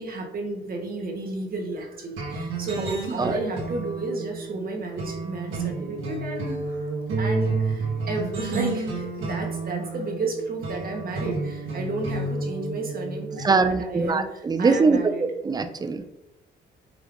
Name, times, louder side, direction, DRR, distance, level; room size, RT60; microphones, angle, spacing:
voice 1, 0.0-15.3, right 2 dB, 50° right, 1 dB, 1.0 m, -32 dB
sound 1, 2.2-13.5, right 3 dB, 80° right, 1.2 m, -30 dB
voice 2, 13.4-15.0 15.4-16.0, right 4 dB, 20° right, 10 dB, 0.3 m, -22 dB
4.9 x 3.2 x 2.5 m, 0.91 s
cardioid pair, 90°, 20 cm